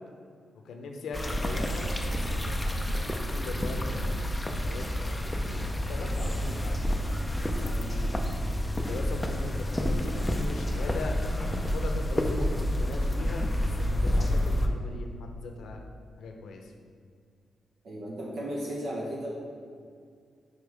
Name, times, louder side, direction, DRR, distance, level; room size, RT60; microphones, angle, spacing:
voice 1, 0.6-2.9 3.3-4.2 4.5-7.0 7.6-8.2 8.7-11.2 11.5-15.8 16.2-16.7, left 3 dB, 85° left, 3 dB, 0.7 m, -40 dB
sound 1, 1.1-14.7, equal, 10° left, 0.4 m, -29 dB
voice 2, 17.8-19.3, equal, 60° right, -3 dB, 1.0 m, -34 dB
5.2 x 4.7 x 4.7 m, 2.2 s
wide cardioid pair, 145°, 0 cm